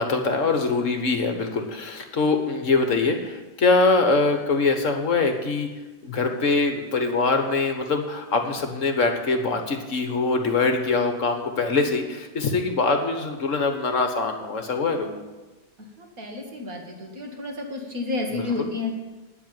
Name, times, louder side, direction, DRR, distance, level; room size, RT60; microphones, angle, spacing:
voice 1, 0.0-5.7 6.0-15.2 18.3-18.7, left 3 dB, 45° left, 5 dB, 1.5 m, -23 dB
voice 2, 16.0-18.9, left 3 dB, 50° right, 0 dB, 2.5 m, -31 dB
9.4 x 8.1 x 9.0 m, 1.2 s
omnidirectional pair, 1.9 m